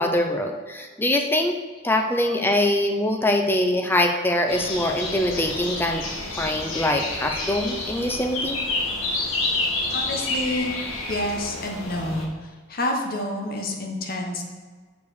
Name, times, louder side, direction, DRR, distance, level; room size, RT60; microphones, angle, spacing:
voice 1, 0.0-1.6 1.8-6.0 6.4-8.6, left 1 dB, 10° left, 3 dB, 0.6 m, -23 dB
sound 1, 4.5-12.3, left 2 dB, 80° left, 1.6 m, -29 dB
voice 2, 9.7-10.8 11.1-14.4, left 1 dB, 45° left, 1 dB, 1.2 m, -29 dB
6.8 x 4.9 x 6.7 m, 1.4 s
head